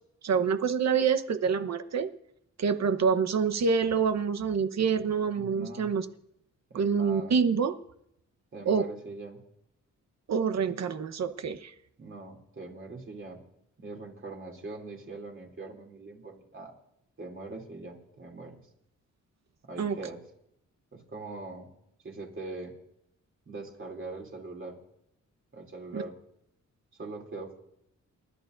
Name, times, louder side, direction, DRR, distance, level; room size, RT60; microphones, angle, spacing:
voice 1, 0.2-2.1 2.6-6.1 6.7-7.7 8.6-8.9 10.3-11.7 19.8-20.0 25.9-26.0, right 6 dB, 60° right, 10 dB, 1.1 m, -26 dB
voice 2, 5.3-5.9 6.7-7.3 8.5-9.4 12.0-13.4 13.8-16.7 17.2-18.6 19.6-20.2 20.9-21.7 22.0-22.7 23.5-24.8 25.5-26.2 27.0-27.6, right 3 dB, 40° right, 0 dB, 3.1 m, -42 dB
29.0 x 11.5 x 2.6 m, 0.78 s
cardioid pair, 90°, 30 cm